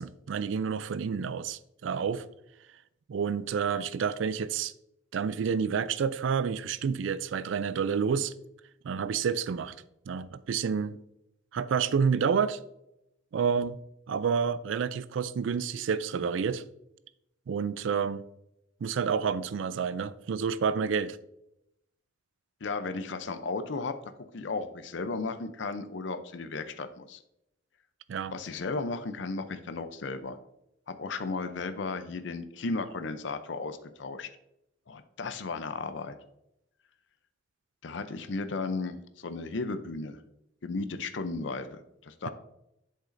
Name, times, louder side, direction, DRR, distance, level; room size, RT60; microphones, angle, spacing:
voice 1, 0.0-2.2 3.1-4.7 5.1-8.3 8.8-9.8 10.1-11.0 11.5-12.6 13.3-13.8 14.1-16.6 17.5-18.2 18.8-21.2 28.1-28.4, right 6 dB, 70° right, 0.4 m, -29 dB
voice 2, 22.6-27.2 28.3-30.4 30.9-34.3 34.9-36.2 37.8-40.2 40.6-42.3, left 3 dB, 65° left, 0.6 m, -35 dB
8.1 x 6.5 x 2.6 m
head